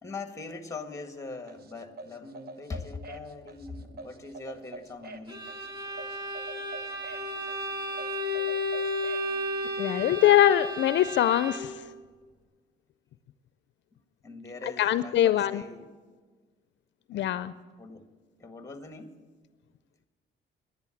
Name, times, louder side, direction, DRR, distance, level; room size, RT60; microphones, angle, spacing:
voice 1, 0.0-5.5 14.2-15.9 17.1-17.4 17.8-18.1 18.4-19.2, left 3 dB, 15° left, 7 dB, 1.6 m, -41 dB
sound 1, 1.5-9.3, right 2 dB, 50° right, 0.9 m, -46 dB
Bowed string instrument, 5.3-11.9, left 1 dB, 20° right, 2.0 m, -33 dB
voice 2, 9.8-11.7 14.8-15.6 17.1-17.5, left 12 dB, 65° left, 14 dB, 0.4 m, -22 dB
10.5 x 10.5 x 8.5 m, 1.4 s
cardioid pair, 90°, 20 cm